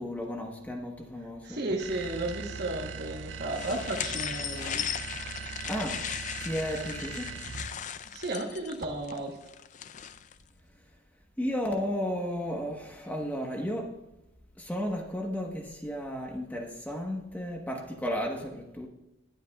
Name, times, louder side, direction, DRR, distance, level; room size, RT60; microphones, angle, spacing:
voice 1, 0.0-1.6 5.7-6.0 6.4-7.3 11.4-13.9 14.6-18.9, equal, 10° left, 1.2 m, -33 dB
voice 2, 1.4-5.0 8.1-9.4, right 2 dB, 60° right, 1.2 m, -34 dB
sound 1, 1.8-7.9, right 5 dB, 85° right, 0.6 m, -40 dB
sound 2, 3.5-10.3, left 9 dB, 40° left, 0.4 m, -37 dB
20.0 x 8.2 x 2.3 m
head